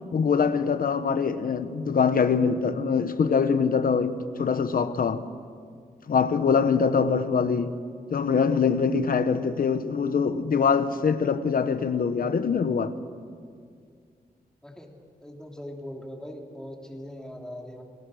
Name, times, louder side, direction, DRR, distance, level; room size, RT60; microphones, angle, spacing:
voice 1, 0.1-5.2 6.1-7.8 8.1-12.9, left 6 dB, 60° left, 1.1 m, -23 dB
voice 2, 14.6-17.8, left 1 dB, 5° left, 2.8 m, -41 dB
29.0 x 20.0 x 6.4 m
wide cardioid pair, 145°, 16 cm